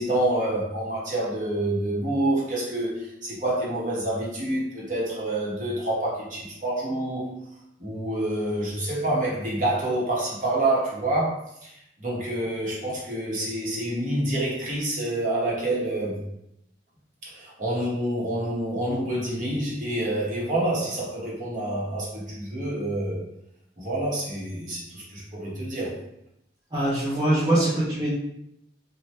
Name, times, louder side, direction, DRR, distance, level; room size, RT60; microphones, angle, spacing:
voice 1, 0.0-7.3 7.8-16.2 17.2-23.2 23.8-26.0, right 1 dB, 45° right, -5 dB, 0.9 m, -27 dB
voice 2, 26.7-28.2, right 1 dB, 20° right, -8 dB, 0.5 m, -23 dB
2.8 x 2.1 x 3.1 m, 0.78 s
head